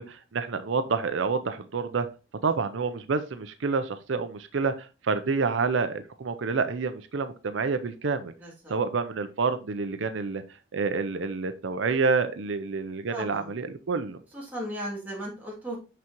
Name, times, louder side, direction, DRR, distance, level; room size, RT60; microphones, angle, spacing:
voice 1, 0.0-2.1 2.4-8.3 8.7-10.4 10.7-14.2, right 4 dB, 80° right, 10 dB, 0.5 m, -28 dB
voice 2, 8.4-8.7 13.1-13.5 14.3-15.8, equal, 10° right, -5 dB, 2.5 m, -36 dB
6.0 x 5.9 x 2.9 m, 0.31 s
head